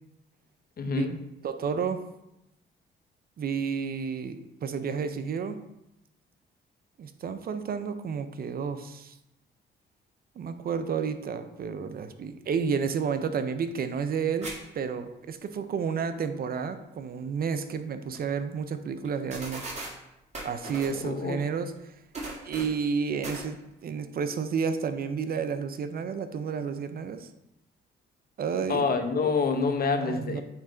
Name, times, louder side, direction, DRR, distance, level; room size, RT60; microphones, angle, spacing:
voice 1, 0.8-1.2 21.0-21.4 28.7-30.4, left 4 dB, 50° left, 7 dB, 0.7 m, -27 dB
voice 2, 1.4-2.0 3.4-5.6 7.0-9.1 10.4-19.6 20.4-21.9 22.4-27.3 28.4-28.9 30.0-30.4, right 6 dB, 50° right, 10 dB, 0.5 m, -31 dB
sound 1, 14.4-14.5 14.9-15.0 17.7-17.8 18.1-18.2 19.0-19.1 19.3-19.9 20.3-21.0 22.1-22.8 23.2-23.5, right 2 dB, 35° right, 1.7 m, -37 dB
8.4 x 3.2 x 3.9 m, 0.89 s
cardioid pair, 90°, 20 cm